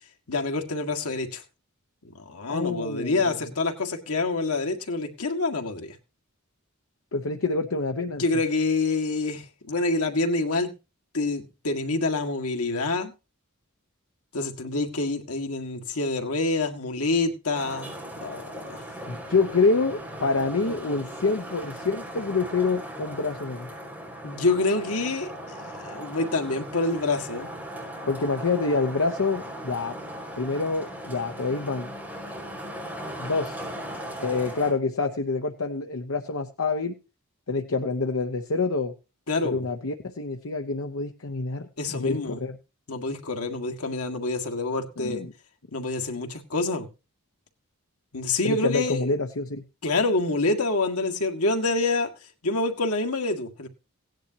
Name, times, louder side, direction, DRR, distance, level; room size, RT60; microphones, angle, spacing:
voice 1, 0.3-1.4 2.3-6.0 8.1-10.7 11.1-13.1 14.3-17.9 18.2-18.4 18.7-18.8 24.2-27.5 39.3-39.7 41.8-42.4 42.9-45.2 45.7-46.9 48.1-49.1 49.8-52.1 52.4-53.7, left 3 dB, 90° left, 1.9 m, -27 dB
voice 2, 2.5-3.4 7.1-8.2 19.1-23.7 28.1-29.9 30.4-31.9 33.2-33.6 34.2-36.9 37.5-38.9 39.4-42.6 45.0-45.3 48.4-49.6, left 3 dB, 70° left, 0.9 m, -27 dB
Traffic noise roadway noise, 17.5-34.7, equal, 10° right, 5.5 m, -38 dB
17.0 x 10.5 x 2.9 m
head